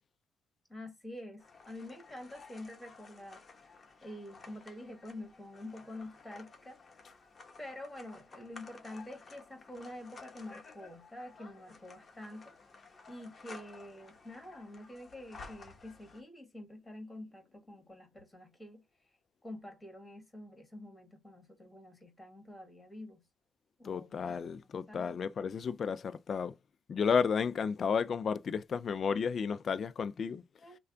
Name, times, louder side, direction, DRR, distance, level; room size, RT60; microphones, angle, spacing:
voice 1, 0.7-3.4 4.0-6.8 7.6-12.6 13.1-18.8 19.4-23.2 23.8-24.1 24.5-25.1 30.6-30.8, left 1 dB, 10° left, 2.0 m, -47 dB
sound 1, 1.4-16.2, left 4 dB, 30° left, 1.1 m, -54 dB
voice 2, 23.8-26.5 26.9-30.4, left 6 dB, 45° left, 0.3 m, -32 dB
3.3 x 2.3 x 3.7 m
cardioid pair, 115°, 0 cm